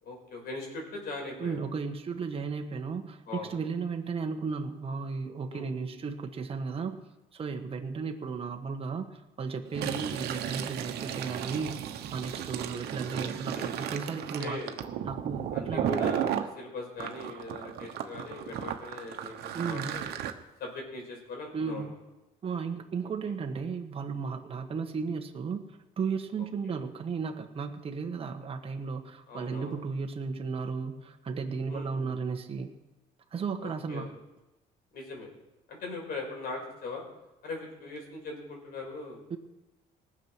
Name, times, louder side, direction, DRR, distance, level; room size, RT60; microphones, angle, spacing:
voice 1, 0.0-1.6 3.3-3.5 5.5-5.7 13.0-14.8 15.5-20.1 20.6-21.9 26.6-26.8 29.3-29.8 31.7-32.2 33.6-34.1 34.9-35.3 35.7-37.0 37.4-39.2, left 3 dB, 65° left, 1 dB, 5.2 m, -40 dB
voice 2, 1.4-7.0 7.3-11.8 12.1-14.6 15.1-15.9 19.5-20.0 21.5-22.0 22.4-25.6 26.0-32.7 33.3-34.1 39.3-39.4, right 5 dB, 35° right, 4 dB, 1.5 m, -34 dB
Fill (with liquid), 9.7-16.5 17.0-20.3, right 10 dB, 70° right, 1.2 m, -34 dB
19.0 x 7.4 x 6.2 m, 1.0 s
cardioid pair, 110°, 17 cm